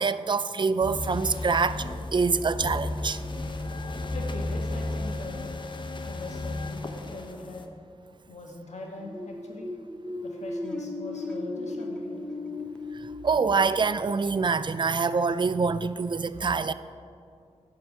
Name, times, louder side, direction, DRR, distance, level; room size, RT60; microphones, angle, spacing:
voice 1, 0.0-1.8 2.1-3.2 13.2-16.7, right 4 dB, 45° right, 13 dB, 0.4 m, -25 dB
sound 1, 0.8-7.7, left 2 dB, 45° left, 0.8 m, -33 dB
voice 2, 4.1-5.5 6.1-7.6 8.3-9.7 10.2-12.2, left 2 dB, 80° left, 0 dB, 1.7 m, -41 dB
sound 2, 9.0-14.6, left 2 dB, 5° left, 0.7 m, -36 dB
11.5 x 4.7 x 7.6 m, 2.4 s
wide cardioid pair, 100°, 12 cm